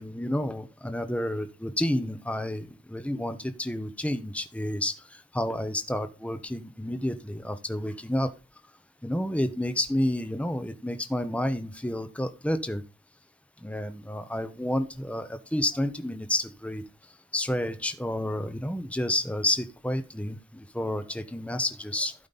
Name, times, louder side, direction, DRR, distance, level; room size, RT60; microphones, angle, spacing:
voice 1, 0.0-8.3 9.0-12.8 13.6-16.8 17.3-22.1, left 1 dB, 5° left, 10 dB, 0.8 m, -30 dB
15.5 x 5.3 x 4.0 m, 0.30 s
head